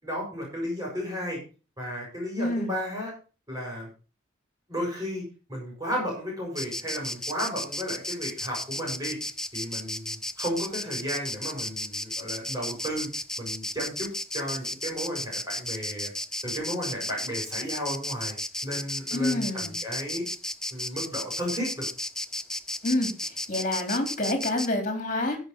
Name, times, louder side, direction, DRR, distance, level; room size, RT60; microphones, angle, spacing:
voice 1, 0.0-1.4 1.8-3.1 3.5-3.9 4.7-13.1 13.4-16.1 16.4-18.4 18.6-20.2 20.7-21.9, equal, 20° right, -2 dB, 6.9 m, -33 dB
voice 2, 2.4-2.7 19.1-19.7 22.8-23.1 23.5-25.4, left 2 dB, 40° left, 4 dB, 3.6 m, -27 dB
Insect, 6.6-24.7, left 1 dB, 5° left, 0.5 m, -34 dB
16.0 x 6.2 x 5.4 m, 0.35 s
head